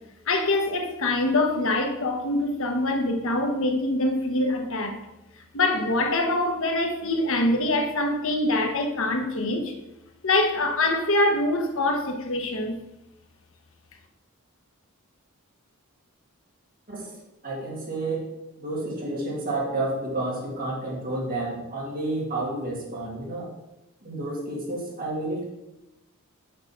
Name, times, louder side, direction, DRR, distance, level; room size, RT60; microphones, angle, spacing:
voice 1, 0.3-5.0 5.5-9.7 10.2-12.8, left 2 dB, 65° left, 1.1 m, -24 dB
voice 2, 17.4-18.3 18.6-23.5 24.0-25.4, right 2 dB, 45° right, 2.4 m, -30 dB
6.6 x 5.2 x 6.2 m
head